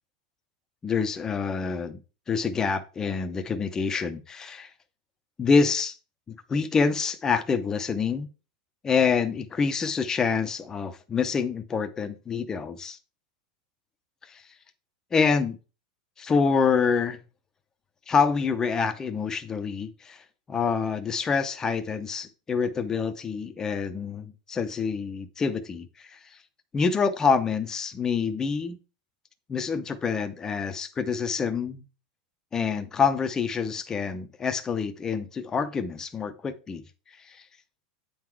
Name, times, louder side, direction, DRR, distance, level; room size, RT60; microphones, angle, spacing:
voice 1, 0.8-2.0 2.3-4.7 5.4-5.9 6.3-8.3 8.8-13.0 14.2-14.4 15.1-15.6 16.2-17.2 18.1-20.2 20.5-26.2 26.7-28.8 29.5-31.8 32.5-36.8 37.2-37.4, left 5 dB, 15° left, 0.6 m, -26 dB
8.6 x 3.8 x 4.5 m
supercardioid pair, 160°, 4 cm